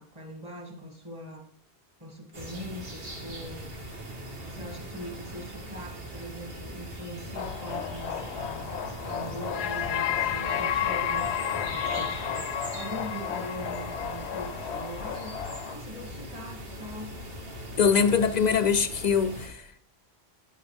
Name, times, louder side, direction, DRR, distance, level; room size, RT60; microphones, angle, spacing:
voice 1, 0.0-1.5 2.0-3.7 4.4-8.7 9.1-12.5 12.7-15.4 15.6-17.2, equal, 25° right, 2.4 m, -41 dB
sound 1, 2.3-19.5, right 1 dB, 60° right, 1.9 m, -40 dB
sound 2, 7.3-15.8, left 9 dB, 80° left, 0.9 m, -32 dB
voice 2, 17.8-19.7, left 6 dB, 55° left, 0.5 m, -23 dB
10.0 x 9.1 x 3.5 m
omnidirectional pair, 1.1 m